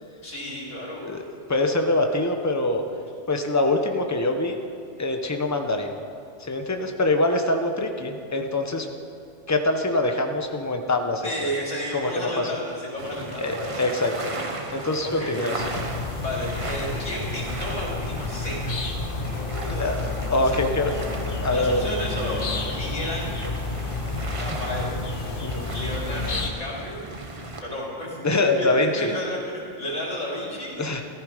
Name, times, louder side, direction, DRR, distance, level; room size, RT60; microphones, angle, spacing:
voice 1, 0.2-1.1 11.2-14.1 15.0-15.5 16.2-18.7 19.3-20.1 20.4-20.7 21.5-23.4 24.3-25.1 25.7-27.1 27.6-28.7 29.0-30.8, equal, 90° left, -4 dB, 3.5 m, -32 dB
voice 2, 1.5-2.8 3.3-4.6 5.0-5.9 6.4-8.9 9.5-11.5 11.9-12.5 13.4-14.1 14.7-15.6 19.7-20.0 20.3-20.9 21.4-21.9 25.4-25.7 28.2-29.1 30.8-31.0, left 2 dB, 15° left, 4 dB, 0.9 m, -24 dB
sound 1, 13.0-27.6, right 2 dB, 30° right, 1.0 m, -36 dB
sound 2, 15.6-26.5, left 3 dB, 50° left, 1.2 m, -30 dB
15.0 x 14.0 x 5.0 m, 2.5 s
omnidirectional pair, 1.2 m